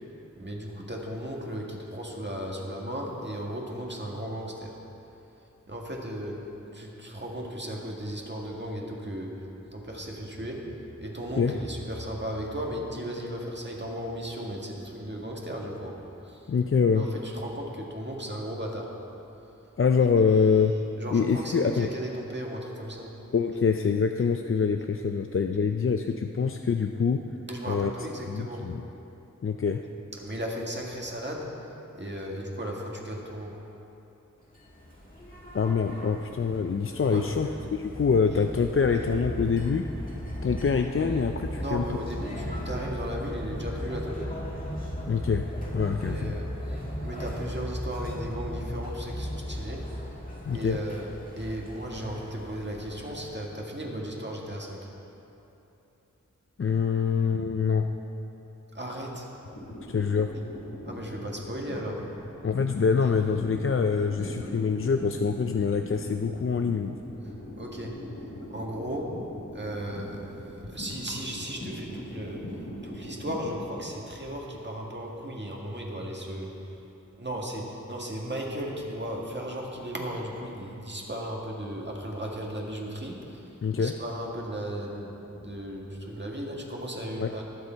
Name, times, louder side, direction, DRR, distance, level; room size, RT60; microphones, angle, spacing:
voice 1, 0.4-4.8 5.7-6.5 6.7-16.5 16.9-18.9 21.0-23.1 27.5-28.6 30.2-31.5 31.9-33.6 37.0-37.3 41.5-44.3 46.0-49.9 50.5-51.1 51.4-54.8 58.7-59.3 60.8-62.1 67.6-68.0 68.5-69.2 69.5-76.7 77.2-83.4 83.7-87.4, equal, 35° right, -2 dB, 1.8 m, -36 dB
voice 2, 16.5-17.1 19.8-20.7 21.1-21.9 23.3-27.2 27.7-27.9 28.3-28.8 29.4-29.8 35.5-39.9 40.4-42.0 45.1-45.4 45.7-46.3 50.5-50.8 56.6-57.9 59.9-60.3 62.4-67.0 83.6-83.9 87.2-87.3, left 5 dB, 45° left, 5 dB, 0.4 m, -25 dB
sound 1, 34.5-53.7, equal, 25° left, 2.1 m, -37 dB
sound 2, 59.4-73.6, left 1 dB, 75° left, 2.7 m, -41 dB
20.0 x 6.8 x 4.5 m, 3.0 s
wide cardioid pair, 55°, 31 cm